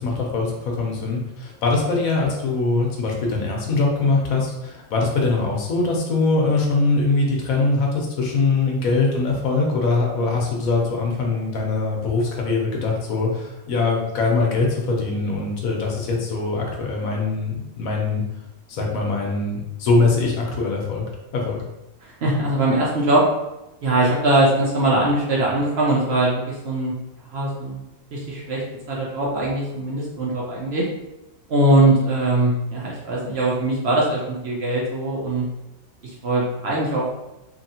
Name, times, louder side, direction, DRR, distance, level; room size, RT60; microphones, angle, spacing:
voice 1, 0.0-18.2 18.7-21.0 21.3-21.6, left 3 dB, 75° left, -1 dB, 1.1 m, -22 dB
voice 2, 22.0-23.3 23.8-26.9 27.3-27.8 28.1-28.6 28.9-30.8 31.5-35.5 36.0-37.1, right 2 dB, 55° right, -4 dB, 0.8 m, -21 dB
2.9 x 2.8 x 2.7 m, 0.94 s
omnidirectional pair, 1.5 m